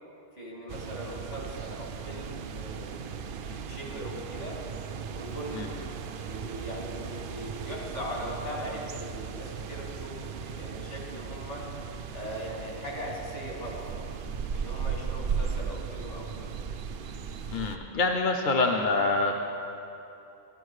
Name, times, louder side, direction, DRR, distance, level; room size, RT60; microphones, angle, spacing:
voice 1, 0.4-4.6 5.1-11.7 12.1-13.9 14.5-16.5, equal, 70° left, -3 dB, 2.7 m, -40 dB
sound 1, 0.7-17.8, right 6 dB, 65° right, 0.7 m, -37 dB
voice 2, 17.5-19.3, left 3 dB, 55° left, 2 dB, 0.8 m, -26 dB
14.0 x 11.5 x 4.8 m, 2.9 s
omnidirectional pair, 1.1 m